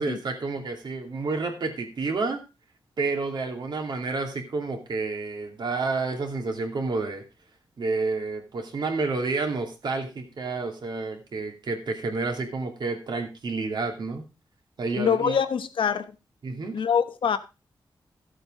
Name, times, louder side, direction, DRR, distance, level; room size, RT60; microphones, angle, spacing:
voice 1, 0.0-2.4 3.0-7.2 7.8-14.2 14.8-15.4 16.4-16.8, right 3 dB, 60° right, 2.6 m, -30 dB
voice 2, 15.0-16.1 16.7-17.4, left 7 dB, 90° left, 1.1 m, -24 dB
14.5 x 7.9 x 3.8 m
wide cardioid pair, 170°, 8 cm